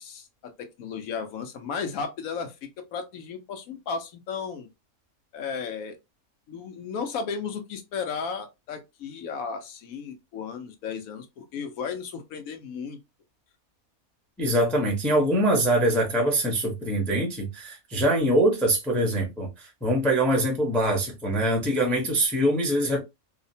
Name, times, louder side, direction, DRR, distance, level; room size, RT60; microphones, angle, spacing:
voice 1, 0.0-4.7 5.3-6.0 6.5-13.0, left 6 dB, 70° left, 1.0 m, -34 dB
voice 2, 14.4-23.0, right 1 dB, ahead, 0.4 m, -23 dB
2.7 x 2.1 x 2.6 m
omnidirectional pair, 1.5 m